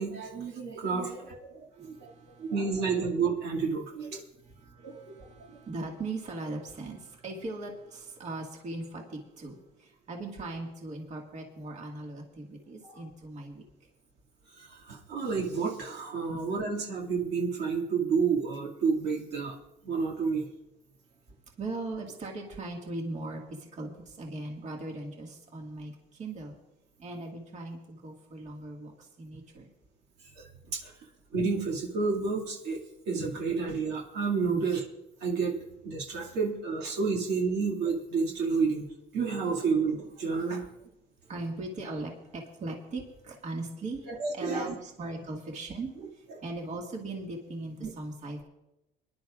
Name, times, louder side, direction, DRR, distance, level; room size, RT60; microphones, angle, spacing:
voice 1, 0.0-2.1 2.4-4.2 4.8-5.3 14.5-19.6 19.8-20.5 30.4-30.9 31.3-32.8 33.1-34.8 35.2-35.6 35.8-38.8 39.1-40.7 44.1-44.8 47.8-47.9, right 5 dB, 80° right, -1 dB, 2.3 m, -30 dB
voice 2, 1.7-2.5 4.4-13.6 16.3-16.4 21.6-26.6 27.0-29.7 34.5-34.6 41.2-48.4, right 2 dB, 45° right, 1 dB, 1.9 m, -39 dB
24.0 x 11.0 x 2.5 m, 0.90 s
cardioid pair, 110°, 17 cm